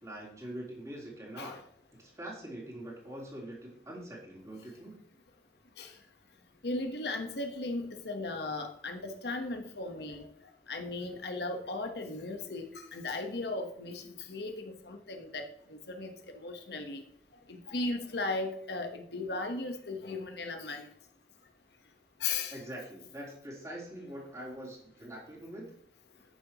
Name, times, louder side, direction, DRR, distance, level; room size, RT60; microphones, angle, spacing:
voice 1, 0.0-1.6 2.0-5.0 22.5-25.7, right 1 dB, 20° right, -4 dB, 3.6 m, -44 dB
voice 2, 6.6-10.2 10.7-14.0 14.3-17.0 17.5-20.9 22.2-22.6, left 2 dB, 70° left, 5 dB, 1.2 m, -36 dB
11.0 x 9.5 x 3.0 m, 0.70 s
head